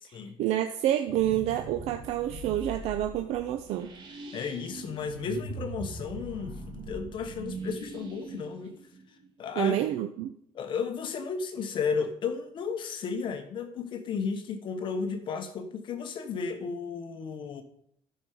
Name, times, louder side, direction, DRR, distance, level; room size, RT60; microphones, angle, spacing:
voice 1, 0.1-3.9 9.6-10.3, right 12 dB, 85° right, 0.7 m, -28 dB
sound 1, 1.1-9.7, right 2 dB, 45° right, 2.3 m, -42 dB
voice 2, 4.3-8.8 9.1-9.8 10.5-17.6, left 5 dB, 50° left, 1.2 m, -34 dB
13.0 x 5.7 x 4.9 m
cardioid pair, 150°, 11 cm